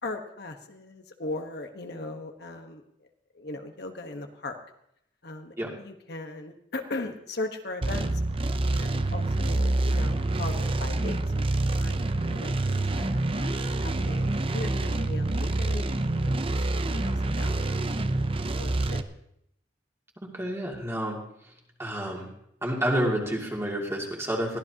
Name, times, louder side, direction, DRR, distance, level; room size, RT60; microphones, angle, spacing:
voice 1, 0.0-3.1 3.3-4.6 5.2-8.1 8.7-16.4 16.8-19.0, left 2 dB, 60° left, 5 dB, 1.3 m, -39 dB
sound 1, 7.8-19.0, right 2 dB, 30° right, 0.6 m, -27 dB
voice 2, 20.3-21.2 21.4-21.5 21.8-22.3 22.6-24.6, right 1 dB, 15° right, -1 dB, 2.4 m, -29 dB
22.0 x 15.5 x 2.9 m, 0.74 s
head